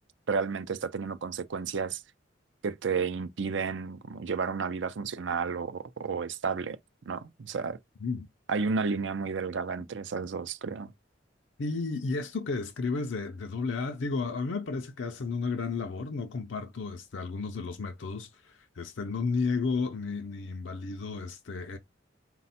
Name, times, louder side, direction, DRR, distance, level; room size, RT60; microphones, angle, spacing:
voice 1, 0.3-2.0 2.6-6.8 7.1-7.8 8.5-10.9, right 5 dB, 70° right, 0.5 m, -32 dB
voice 2, 11.6-21.8, left 4 dB, 75° left, 0.6 m, -33 dB
4.1 x 2.3 x 4.2 m
head